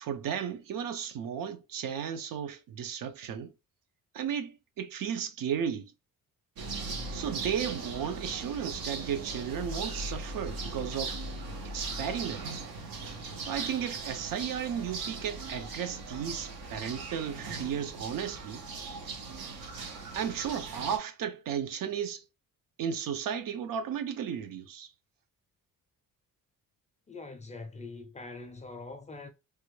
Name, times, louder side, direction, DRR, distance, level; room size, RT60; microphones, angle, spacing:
voice 1, 0.0-3.5 4.1-5.9 7.1-11.2 11.7-12.7 13.4-18.6 20.1-22.2 22.8-24.9, right 8 dB, 70° right, 0.6 m, -34 dB
sound 1, 6.6-21.0, right 3 dB, 90° right, 0.9 m, -39 dB
voice 2, 27.1-29.3, left 3 dB, 20° left, 0.3 m, -43 dB
3.3 x 2.2 x 3.1 m
wide cardioid pair, 175°, 35 cm